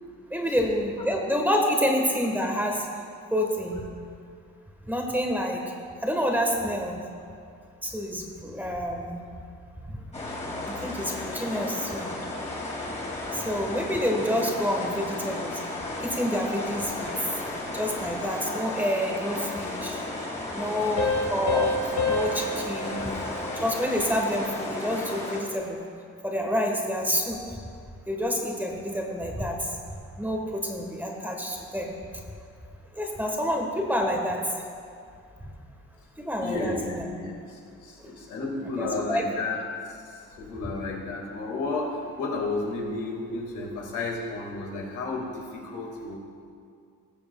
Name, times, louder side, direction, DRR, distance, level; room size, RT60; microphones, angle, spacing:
voice 1, 0.3-2.8 3.3-3.8 4.9-5.7 6.0-7.0 7.8-9.2 9.9-10.0 10.7-12.1 13.3-15.6 16.0-17.1 17.7-20.0 20.5-23.1 23.6-25.8 26.2-27.4 28.1-29.8 30.2-32.0 32.9-34.6 36.2-37.0 38.0-38.1 38.8-39.3, equal, 5° right, 1 dB, 1.3 m, -28 dB
sound 1, 10.1-25.4, left 2 dB, 25° left, 2.3 m, -34 dB
voice 2, 17.4-17.8 19.3-19.4 36.4-39.6 39.9-46.2, left 3 dB, 90° left, -1 dB, 2.0 m, -33 dB
sound 2, 21.0-24.3, left 3 dB, 65° left, 1.6 m, -29 dB
18.0 x 6.8 x 2.3 m, 2.3 s
cardioid pair, 90°, 30 cm